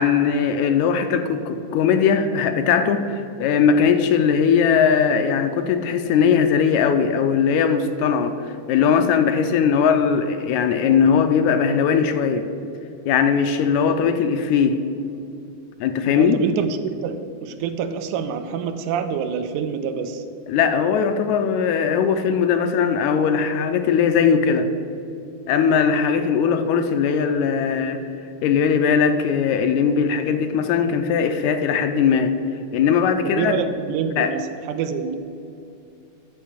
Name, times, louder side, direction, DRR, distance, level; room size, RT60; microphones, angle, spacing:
voice 1, 0.0-12.5 13.1-14.8 15.8-16.4 20.5-24.7 25.5-28.0 28.4-32.3 32.7-33.6 34.2-34.3, left 6 dB, 80° left, 8 dB, 1.8 m, -19 dB
voice 2, 16.1-20.2 26.4-26.6 33.2-35.2, right 7 dB, 85° right, 9 dB, 2.1 m, -27 dB
10.5 x 4.5 x 7.4 m, 2.6 s
omnidirectional pair, 3.5 m